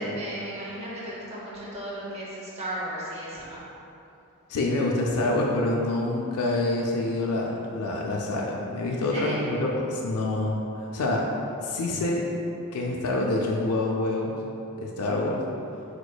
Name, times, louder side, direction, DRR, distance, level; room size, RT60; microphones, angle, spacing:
voice 1, 0.0-3.6 8.9-9.5, right 1 dB, 30° right, -6 dB, 0.8 m, -35 dB
voice 2, 4.5-11.3 11.6-12.3 12.7-14.4 14.8-15.4, left 2 dB, 90° left, -2 dB, 0.4 m, -26 dB
4.9 x 4.3 x 2.2 m, 2.8 s
head